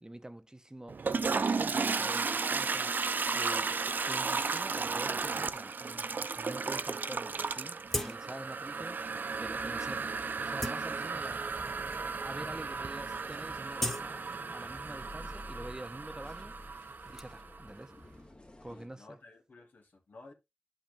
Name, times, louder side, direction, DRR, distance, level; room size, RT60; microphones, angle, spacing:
voice 1, 0.0-2.9 3.3-11.5 12.1-14.3 14.5-16.6 17.1-17.9 18.6-19.2, right 1 dB, 20° right, 0.7 m, -46 dB
Toilet flush, 0.9-17.6, right 4 dB, 75° right, 0.5 m, -34 dB
sound 1, 7.1-7.2 7.9-8.6 9.0-9.1 9.7-9.9 10.3-11.5 12.1-12.2 12.5-12.8 13.1-15.0 15.3-17.2, left 1 dB, 10° left, 1.3 m, -40 dB
sound 2, 9.3-18.9, left 1 dB, 35° left, 1.6 m, -52 dB
voice 2, 18.7-20.3, left 3 dB, 75° left, 2.1 m, -54 dB
10.0 x 5.7 x 2.6 m
cardioid pair, 40°, 3 cm